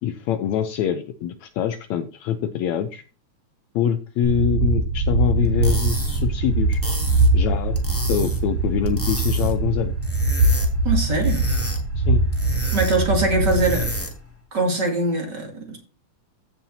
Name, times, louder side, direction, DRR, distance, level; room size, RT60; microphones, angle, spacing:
voice 1, 0.0-3.0 3.8-6.8 7.3-7.8 8.1-9.9 12.0-12.2, left 9 dB, 75° left, 9 dB, 1.9 m, -25 dB
sound 1, 4.2-14.0, right 2 dB, 70° right, 6.6 m, -22 dB
sound 2, 5.4-14.3, left 2 dB, 5° left, 1.6 m, -33 dB
voice 2, 10.8-11.4 12.7-13.9 14.5-15.8, right 2 dB, 35° right, 2 dB, 3.1 m, -22 dB
15.0 x 7.3 x 2.8 m, 0.35 s
omnidirectional pair, 3.5 m